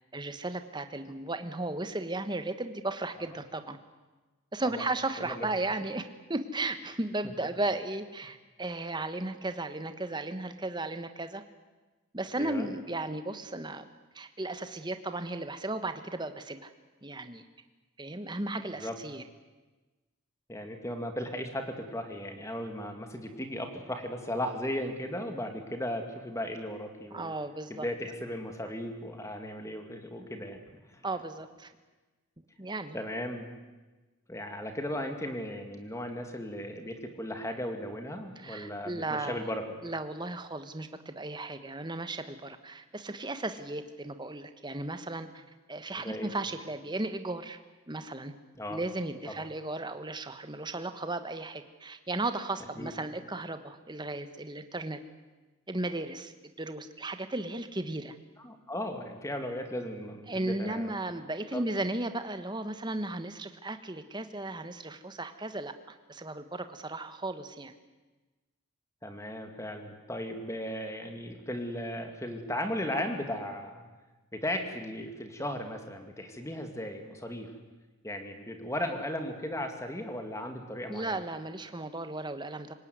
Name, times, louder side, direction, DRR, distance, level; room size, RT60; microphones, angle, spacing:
voice 1, 0.1-3.8 4.5-11.4 12.1-13.9 14.1-16.7 17.0-17.4 18.0-19.2 27.1-27.9 31.0-31.7 32.6-33.0 38.4-39.5 39.8-45.4 45.7-47.6 47.9-48.3 48.7-55.0 55.7-58.1 60.3-67.7 80.9-82.7, right 2 dB, 20° right, 9 dB, 1.3 m, -35 dB
voice 2, 5.2-5.5 12.4-12.7 18.8-19.0 20.5-27.3 27.7-30.6 30.9-31.0 32.9-33.5 34.3-39.8 46.0-46.3 48.6-48.8 49.3-49.5 52.8-52.9 58.4-61.0 61.5-61.7 69.0-73.9 74.3-77.5 78.0-81.2, left 1 dB, 15° left, 5 dB, 2.4 m, -36 dB
26.5 x 17.5 x 9.5 m, 1.2 s
head